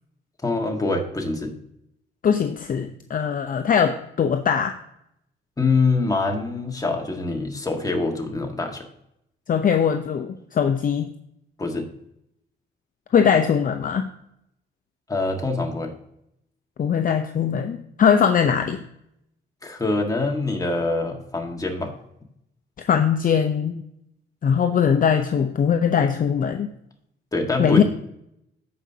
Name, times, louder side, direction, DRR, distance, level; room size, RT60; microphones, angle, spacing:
voice 1, 0.4-1.5 5.6-8.8 11.6-11.9 15.1-15.9 19.6-21.9 27.3-27.8, left 3 dB, 15° left, 2 dB, 1.7 m, -24 dB
voice 2, 2.2-4.7 9.5-11.1 13.1-14.1 16.8-18.8 22.9-23.8 24.4-26.7 27.6-27.8, left 7 dB, 45° left, 6 dB, 0.6 m, -21 dB
14.5 x 5.2 x 2.8 m, 0.78 s
cardioid pair, 90°, 20 cm